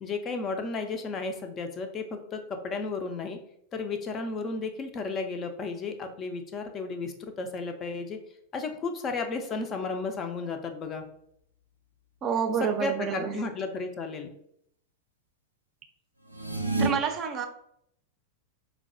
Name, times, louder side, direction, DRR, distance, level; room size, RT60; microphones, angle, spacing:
voice 1, 0.0-3.4 3.7-8.2 8.5-11.0 12.6-14.3, left 3 dB, 30° left, 6 dB, 0.4 m, -33 dB
voice 2, 12.2-13.4 16.8-17.5, right 6 dB, 30° right, 5 dB, 0.4 m, -28 dB
sound 1, 16.3-16.9, right 3 dB, 90° left, 0.4 m, -28 dB
4.5 x 2.1 x 2.5 m, 0.70 s
figure-of-eight pair, 90°, 0 cm